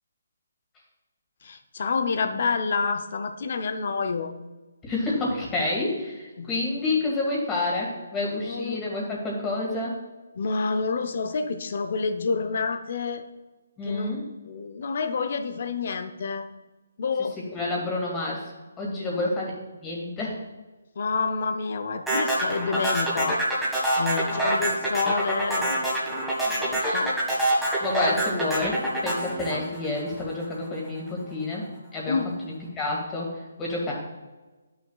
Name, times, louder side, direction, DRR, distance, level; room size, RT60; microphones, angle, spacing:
voice 1, 1.4-4.3 6.4-6.5 8.3-8.8 10.4-13.2 13.8-14.2 14.4-16.5 17.0-17.4 19.2-19.3 21.0-23.4 24.0-25.9 26.5-27.2 32.1-32.4, left 4 dB, 55° left, 8 dB, 0.6 m, -28 dB
voice 2, 4.8-10.0 13.8-14.3 17.5-20.4 26.8-27.1 27.8-31.6 31.9-32.2 32.4-33.9, left 2 dB, 15° left, -3 dB, 1.9 m, -29 dB
sound 1, 22.1-30.4, right 1 dB, ahead, 1.6 m, -26 dB
11.0 x 5.9 x 2.3 m, 1.2 s
figure-of-eight pair, 150°, 0 cm